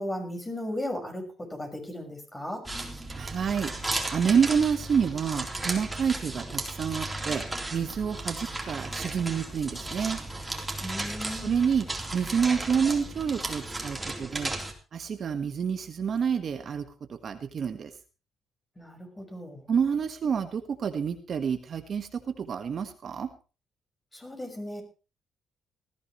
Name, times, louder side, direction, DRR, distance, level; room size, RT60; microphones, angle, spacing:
voice 1, 0.0-2.6 10.8-11.7 18.8-19.7 24.1-24.8, left 1 dB, 15° left, 3 dB, 6.0 m, -36 dB
sound 1, 2.6-14.7, right 2 dB, 10° right, 3.8 m, -35 dB
voice 2, 3.2-3.7 4.1-7.4 7.7-10.2 11.4-11.9 12.1-14.5 14.9-17.9 19.7-23.3, right 7 dB, 50° right, 7 dB, 1.5 m, -28 dB
19.5 x 15.0 x 3.2 m, 0.33 s
cardioid pair, 105°, 0 cm